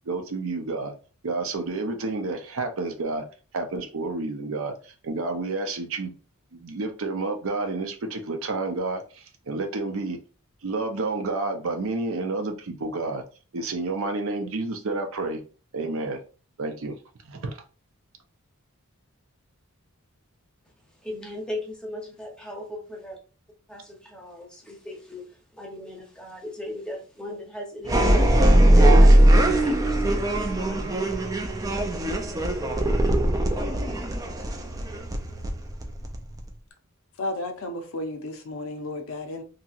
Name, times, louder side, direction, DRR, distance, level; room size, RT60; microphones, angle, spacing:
voice 1, 0.1-0.9 1.2-3.2 3.5-6.1 6.5-10.2 10.6-13.2 13.5-15.4 15.7-16.2 16.6-16.9 17.2-17.6, right 3 dB, 65° right, 0.6 m, -30 dB
voice 2, 21.0-23.2 23.7-25.3 25.5-30.9, left 1 dB, 5° left, 0.7 m, -38 dB
sound 1, 27.8-36.5, right 1 dB, 15° right, 0.3 m, -20 dB
voice 3, 37.2-39.4, left 2 dB, 65° left, 0.6 m, -33 dB
2.8 x 2.7 x 2.4 m
head